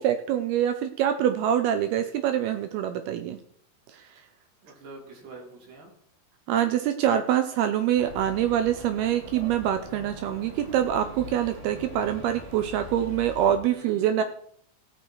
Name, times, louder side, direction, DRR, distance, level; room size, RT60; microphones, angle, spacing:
voice 1, 0.0-3.4 3.9-4.0 6.5-14.2, right 10 dB, 80° right, 8 dB, 2.3 m, -25 dB
voice 2, 4.6-5.9 13.7-14.2, right 3 dB, 50° right, -2 dB, 4.7 m, -46 dB
sound 1, 7.9-13.6, equal, 20° right, 2.1 m, -42 dB
17.0 x 6.7 x 4.6 m, 0.62 s
omnidirectional pair, 5.2 m